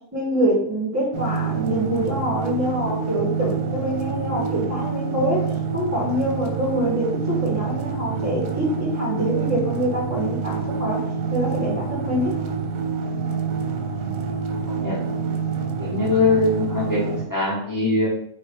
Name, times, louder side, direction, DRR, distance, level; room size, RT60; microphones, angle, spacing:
voice 1, 0.1-5.4 5.7-11.0 11.3-12.3, right 1 dB, 10° right, -5 dB, 1.5 m, -25 dB
sound 1, 1.1-17.2, right 5 dB, 80° right, 1.1 m, -27 dB
voice 2, 14.7-15.0 15.8-18.1, left 3 dB, 15° left, -7 dB, 0.8 m, -22 dB
3.4 x 3.2 x 4.6 m, 0.70 s
omnidirectional pair, 1.5 m